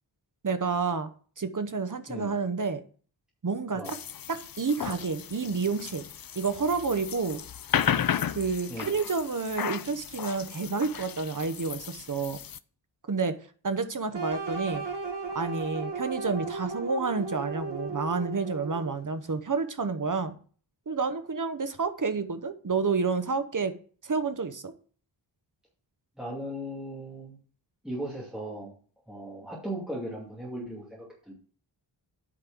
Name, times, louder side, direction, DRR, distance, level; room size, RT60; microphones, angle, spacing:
voice 1, 0.4-1.1 1.4-2.8 3.4-4.0 4.3-6.1 6.4-7.4 8.3-12.4 13.1-13.3 13.6-14.8 15.3-20.4 20.9-23.7 24.0-24.7, right 4 dB, 40° right, 11 dB, 0.9 m, -29 dB
sound 1, 3.8-12.6, left 9 dB, 50° left, 0.5 m, -34 dB
sound 2, 14.1-19.1, right 4 dB, 60° right, 2.0 m, -35 dB
voice 2, 26.2-27.4 27.8-28.7 29.1-31.3, right 1 dB, ahead, -5 dB, 2.5 m, -37 dB
8.7 x 5.3 x 6.2 m, 0.43 s
wide cardioid pair, 105°, 46 cm